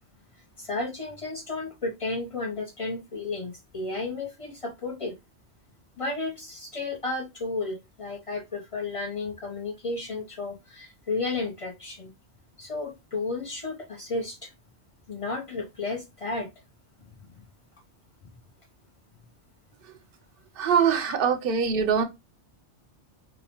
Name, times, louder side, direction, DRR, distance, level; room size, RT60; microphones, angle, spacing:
voice 1, 0.6-5.1 6.0-12.1 12.6-14.5 15.1-16.5 17.0-17.4, left 3 dB, 50° left, 0.4 m, -33 dB
voice 2, 20.6-22.0, right 7 dB, 60° right, 0.7 m, -23 dB
2.9 x 2.0 x 2.8 m
omnidirectional pair, 1.2 m